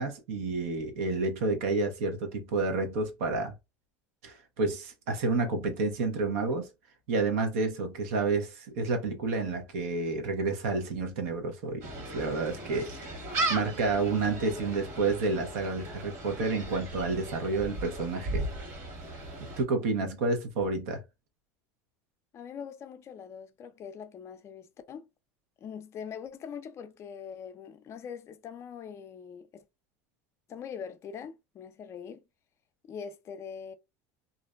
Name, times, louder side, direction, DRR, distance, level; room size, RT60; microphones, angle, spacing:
voice 1, 0.0-3.5 4.2-6.7 7.1-13.2 13.5-18.5 19.6-21.0, right 3 dB, 80° right, 0.8 m, -30 dB
Gull seagull, 11.8-19.6, right 2 dB, 50° right, 1.4 m, -37 dB
voice 2, 22.3-25.1 25.6-29.6 30.5-32.2 32.8-33.7, left 7 dB, 35° left, 0.4 m, -42 dB
2.5 x 2.1 x 2.4 m
supercardioid pair, 125°, 8 cm